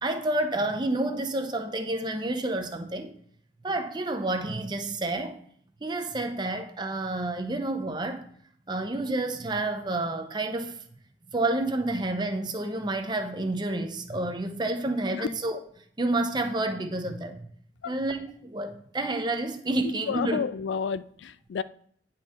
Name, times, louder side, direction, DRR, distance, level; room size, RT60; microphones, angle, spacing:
voice 1, 0.0-3.1 3.6-5.4 5.8-8.2 8.7-10.8 11.3-15.6 16.0-17.5 17.9-20.4, right 2 dB, 25° right, 0.7 m, -29 dB
voice 2, 19.8-21.6, left 6 dB, 85° left, 0.3 m, -31 dB
9.6 x 4.5 x 3.6 m
head